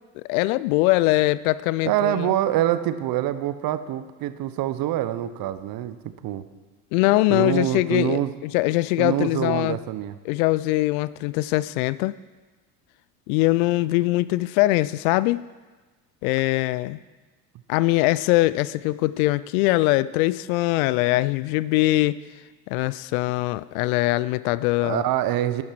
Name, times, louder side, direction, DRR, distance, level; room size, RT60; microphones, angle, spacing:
voice 1, 0.2-2.3 6.9-9.8 10.3-12.1 13.3-15.4 16.2-17.0 17.7-22.2 22.7-25.0, left 18 dB, 60° left, 18 dB, 0.5 m, -22 dB
voice 2, 1.8-6.5 7.3-8.3 9.0-10.1 24.8-25.6, right 13 dB, 45° right, 13 dB, 0.9 m, -25 dB
11.5 x 11.0 x 4.7 m, 1.3 s
hypercardioid pair, 70°, 49 cm